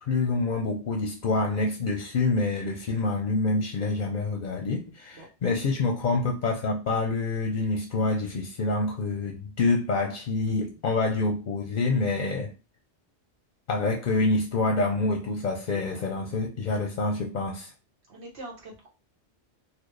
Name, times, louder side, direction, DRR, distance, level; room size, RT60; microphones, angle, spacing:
voice 1, 0.0-12.5 13.7-17.7, left 3 dB, 50° left, 0.6 m, -27 dB
voice 2, 15.7-16.0 16.3-16.4 18.1-18.9, right 2 dB, 70° right, 1.4 m, -44 dB
4.1 x 2.2 x 3.2 m
omnidirectional pair, 1.2 m